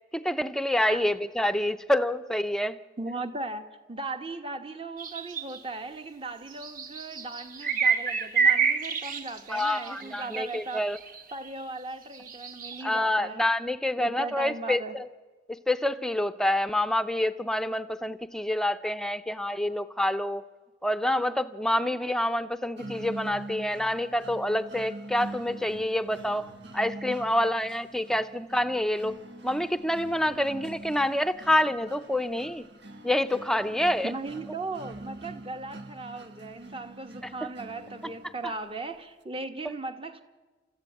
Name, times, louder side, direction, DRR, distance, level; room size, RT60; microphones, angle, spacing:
voice 1, 0.1-2.8 9.5-11.0 12.8-15.1 15.5-20.4 20.8-26.5 26.7-29.2 29.4-32.7 33.0-34.1, left 1 dB, 5° left, 0.6 m, -27 dB
voice 2, 3.0-10.9 11.3-13.5 14.0-15.0 34.0-40.2, right 3 dB, 30° right, 1.3 m, -37 dB
sound 1, 5.0-5.6 6.5-11.5 12.1-12.8, right 6 dB, 50° right, 1.4 m, -28 dB
sound 2, 22.8-38.7, right 2 dB, 75° right, 1.6 m, -44 dB
29.5 x 14.0 x 8.5 m
head